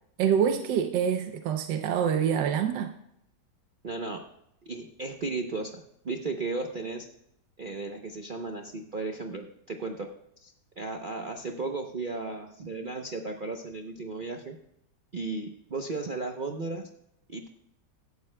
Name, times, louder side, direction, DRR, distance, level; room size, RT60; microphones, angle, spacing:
voice 1, 0.2-2.9, right 8 dB, 80° right, 6 dB, 1.4 m, -26 dB
voice 2, 3.8-4.2 4.6-7.1 7.6-10.1 10.4-14.6 15.1-16.9 17.3-17.5, right 3 dB, 50° right, 3 dB, 0.6 m, -35 dB
16.5 x 12.0 x 2.2 m, 0.77 s
omnidirectional pair, 1.9 m